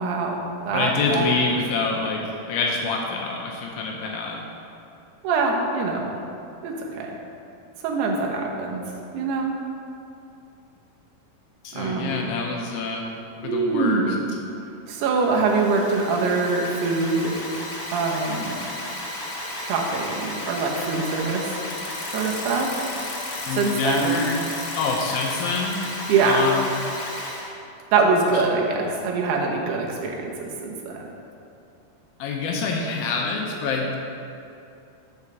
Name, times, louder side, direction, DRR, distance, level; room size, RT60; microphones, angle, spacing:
voice 1, 0.0-1.3 5.2-6.1 6.6-7.1 7.8-8.8 9.1-9.5 11.7-12.3 13.4-14.3 14.9-17.4 17.9-18.6 19.5-21.5 21.9-22.7 23.6-24.2 26.1-26.5 27.9-31.0, right 4 dB, 90° right, 0 dB, 3.0 m, -24 dB
voice 2, 0.7-4.5 11.6-13.1 13.4-14.2 23.4-24.4 24.8-25.8 26.2-26.7 32.2-34.0, left 4 dB, 80° left, 0 dB, 2.3 m, -26 dB
Alarm, 15.1-27.5, left 1 dB, 45° left, 2.0 m, -34 dB
sound 1, 21.7-25.9, left 5 dB, 60° left, 1.9 m, -38 dB
7.1 x 4.8 x 6.6 m, 2.7 s
omnidirectional pair, 4.6 m